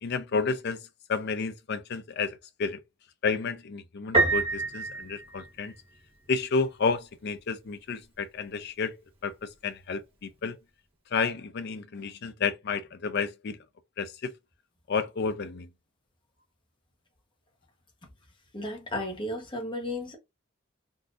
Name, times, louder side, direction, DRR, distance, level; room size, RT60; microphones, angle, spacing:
voice 1, 0.0-0.8 1.1-2.8 3.2-5.7 6.3-9.0 9.2-10.6 11.1-13.6 14.0-14.3 14.9-15.7, left 5 dB, 50° left, 0.5 m, -31 dB
Piano, 4.1-6.0, right 3 dB, 25° right, 1.0 m, -27 dB
voice 2, 18.5-20.2, left 1 dB, 25° left, 1.0 m, -34 dB
3.7 x 2.6 x 2.5 m
head